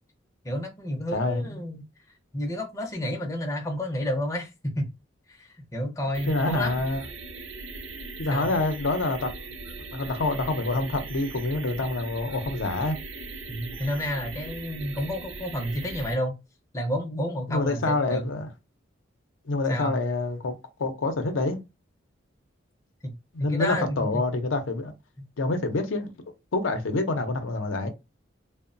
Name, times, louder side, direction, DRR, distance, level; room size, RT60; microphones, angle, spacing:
voice 1, 0.4-1.8 2.3-4.9 5.3-6.8 8.3-8.5 13.5-16.4 16.7-18.4 19.7-20.0 23.0-23.1 23.5-24.3 25.2-25.3, equal, 15° left, 0.5 m, -30 dB
voice 2, 1.1-1.6 6.3-7.0 8.2-9.5 9.9-13.0 17.5-18.5 19.5-21.6 23.3-24.9 25.4-26.1 26.5-27.9, left 2 dB, 75° left, 0.5 m, -27 dB
sound 1, 6.1-16.1, right 3 dB, 70° right, 0.6 m, -39 dB
2.8 x 2.0 x 2.5 m
head